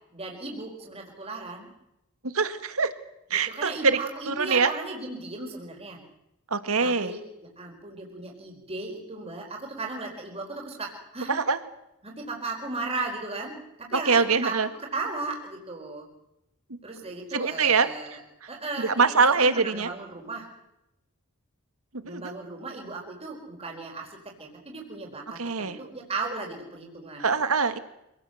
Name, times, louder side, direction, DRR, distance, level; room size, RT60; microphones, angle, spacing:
voice 1, 0.1-1.7 3.5-6.0 6.8-7.2 7.6-11.3 12.0-14.6 14.9-16.1 16.8-18.2 18.5-20.5 22.0-27.3, right 3 dB, 25° right, 0 dB, 4.6 m, -36 dB
voice 2, 2.2-2.9 3.3-4.0 4.3-4.7 6.5-7.2 11.3-11.6 14.1-14.7 16.7-16.8 17.3-17.9 18.8-19.9 22.1-22.3 25.4-25.8 27.2-27.8, right 4 dB, 70° right, 10 dB, 1.9 m, -23 dB
26.5 x 18.5 x 7.9 m, 0.87 s
head